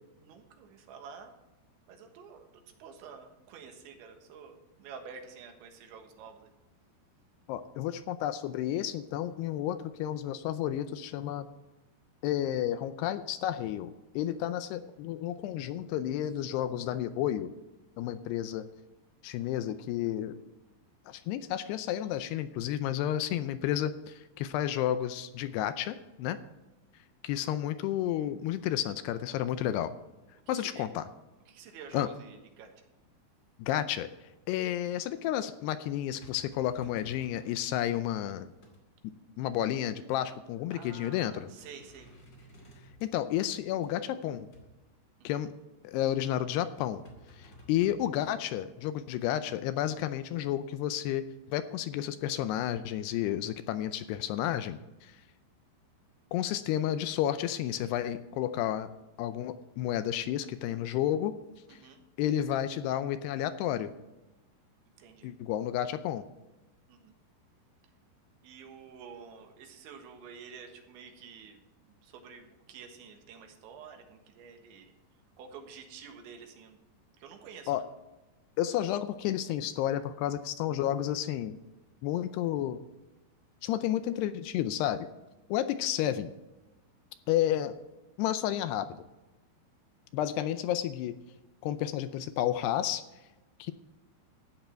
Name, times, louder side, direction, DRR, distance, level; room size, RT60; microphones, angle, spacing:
voice 1, 0.2-1.3 1.9-6.5 18.5-18.6 30.6-30.9 31.5-32.7 40.7-42.1 45.2-45.3 61.7-62.0 65.0-65.3 66.9-67.1 68.4-71.6 72.0-74.9 75.4-76.8 77.2-77.8, right 6 dB, 90° right, 4 dB, 3.8 m, -49 dB
voice 2, 7.5-11.5 12.2-17.5 18.0-18.7 19.2-20.4 21.1-26.4 27.2-29.9 30.5-31.0 31.9-32.1 33.6-34.1 34.5-38.5 39.4-41.5 43.0-44.5 45.2-45.5 45.8-47.0 47.4-51.2 51.5-55.1 56.3-58.9 59.2-61.3 61.7-61.8 62.2-63.9 65.2-66.2 77.7-77.8 78.6-81.6 82.0-82.8 83.6-85.1 85.5-86.3 87.3-87.8 88.2-88.9 90.1-91.2 91.6-93.0 93.6-93.7, left 11 dB, 80° left, 11 dB, 2.5 m, -31 dB
sound 1, 35.6-37.5 38.0-38.8 40.3-40.4 40.8-41.1 41.4-43.9 44.5-44.7 46.8-48.0, left 1 dB, 35° left, 2.1 m, -54 dB
13.5 x 9.3 x 4.4 m, 1.0 s
omnidirectional pair, 5.1 m